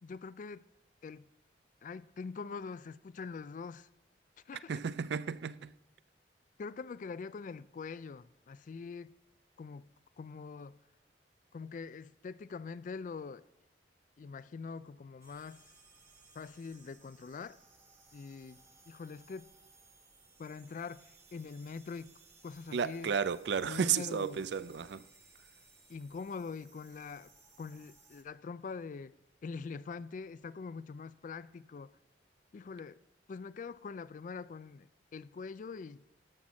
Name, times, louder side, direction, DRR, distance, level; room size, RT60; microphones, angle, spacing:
voice 1, 0.0-0.7 1.0-1.3 1.8-3.9 4.5-4.8 6.6-9.1 9.6-9.9 10.2-10.8 11.5-13.4 14.2-15.7 16.3-17.6 18.1-18.6 18.9-19.5 20.4-22.2 22.4-23.1 23.6-24.4 25.9-27.3 27.6-29.1 29.4-32.0 32.5-33.0 33.3-36.0, left 5 dB, 45° left, 0.3 m, -44 dB
voice 2, 4.7-5.7 22.7-25.1, right 7 dB, 75° right, 0.4 m, -33 dB
sound 1, 15.2-28.2, right 3 dB, 15° right, 1.4 m, -62 dB
13.0 x 5.8 x 6.3 m
head